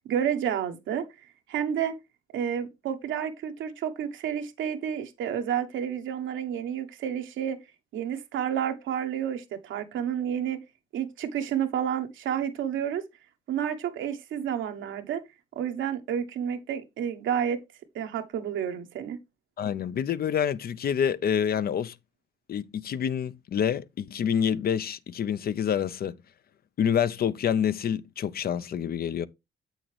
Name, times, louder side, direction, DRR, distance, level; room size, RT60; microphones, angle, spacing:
voice 1, 0.1-1.0 1.5-1.9 2.3-7.6 7.9-10.6 10.9-13.0 13.5-15.2 15.5-17.6 17.9-19.2, right 9 dB, 80° right, 1.1 m, -30 dB
voice 2, 19.6-21.9 22.5-26.2 26.8-29.3, left 8 dB, 50° left, 0.5 m, -27 dB
7.7 x 6.4 x 3.2 m
cardioid pair, 90°, 20 cm